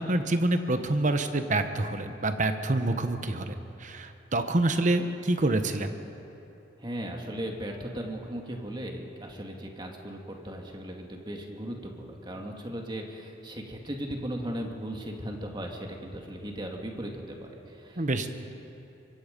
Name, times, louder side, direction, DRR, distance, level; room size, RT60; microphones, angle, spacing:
voice 1, 0.0-5.9 18.0-18.3, right 2 dB, 40° right, 8 dB, 1.1 m, -27 dB
voice 2, 6.8-18.3, equal, 25° right, 1 dB, 2.3 m, -37 dB
24.5 x 24.0 x 5.4 m, 3.0 s
head